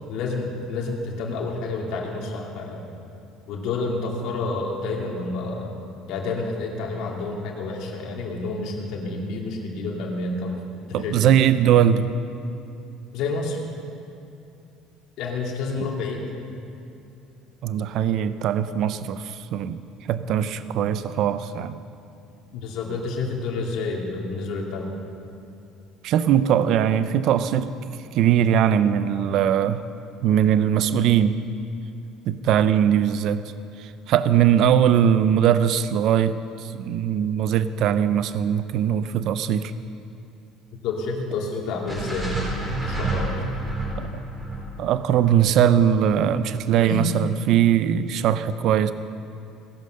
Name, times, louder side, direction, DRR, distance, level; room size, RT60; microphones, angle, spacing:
voice 1, 0.1-2.8 3.5-5.7 6.1-10.6 11.0-11.3 13.1-13.6 15.2-16.2 22.5-25.0 40.7-42.5 42.8-43.3 46.9-47.1, left 3 dB, 55° left, -1 dB, 2.6 m, -29 dB
voice 2, 10.9-12.1 15.8-15.9 17.6-19.8 20.1-21.8 26.0-27.7 28.1-29.8 30.2-31.4 32.3-33.4 33.8-39.7 44.0-44.2 44.8-48.9, right 9 dB, 50° right, 12 dB, 0.5 m, -20 dB
sound 1, 41.9-46.0, right 2 dB, 10° right, 4.1 m, -29 dB
18.0 x 11.0 x 6.5 m, 2.7 s
cardioid pair, 175°, 0 cm